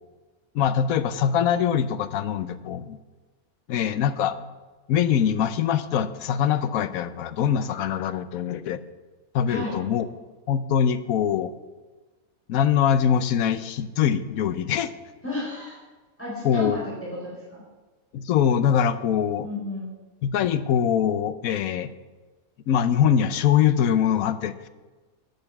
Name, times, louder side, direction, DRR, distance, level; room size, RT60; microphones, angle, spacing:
voice 1, 0.5-3.0 3.7-4.4 4.9-8.8 9.3-10.1 10.5-11.5 12.5-14.9 16.4-16.8 18.1-19.5 20.2-21.9 22.7-24.7, left 8 dB, 80° left, 13 dB, 1.1 m, -23 dB
voice 2, 15.2-15.8 16.2-16.8 17.2-17.6 19.4-19.9, left 2 dB, 10° left, -6 dB, 4.2 m, -32 dB
10.5 x 8.0 x 7.1 m, 1.3 s
omnidirectional pair, 1.5 m